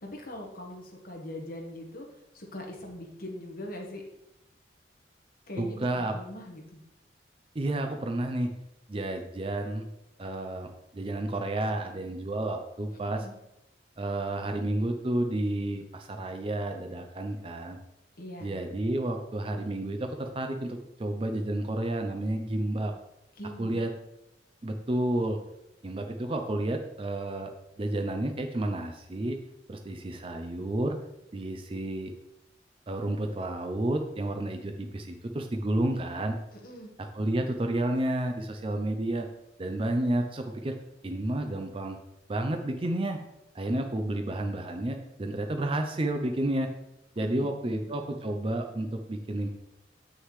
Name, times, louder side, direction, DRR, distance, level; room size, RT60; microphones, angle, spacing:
voice 1, 0.0-2.0 2.3-4.0 5.5-6.8 13.1-13.3 18.2-18.5 23.4-23.7 36.5-36.9 47.2-47.8, left 1 dB, 50° left, 0 dB, 1.4 m, -41 dB
voice 2, 5.6-6.1 7.5-8.5 8.9-9.9 10.2-13.2 14.0-17.8 18.4-22.9 23.6-23.9 24.6-25.4 25.8-27.5 27.8-29.4 29.7-31.0 31.3-32.1 32.9-36.4 37.1-39.3 39.6-40.7 41.0-42.0 42.3-43.2 43.5-46.7 47.2-49.5, right 1 dB, 30° right, 5 dB, 0.5 m, -31 dB
7.8 x 6.3 x 3.2 m, 0.88 s
head